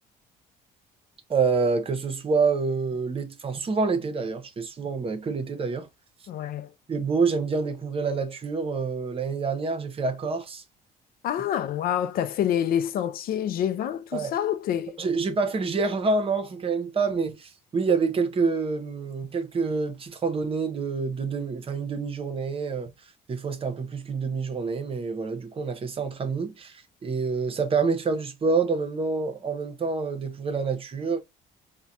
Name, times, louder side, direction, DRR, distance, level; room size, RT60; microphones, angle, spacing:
voice 1, 1.3-5.9 6.9-10.6 14.1-14.4 15.0-22.9 23.3-31.2, right 4 dB, 35° right, 0.8 m, -27 dB
voice 2, 6.3-6.7 11.2-15.0, left 10 dB, 60° left, 0.4 m, -27 dB
4.0 x 2.2 x 2.3 m
cardioid pair, 110°, 17 cm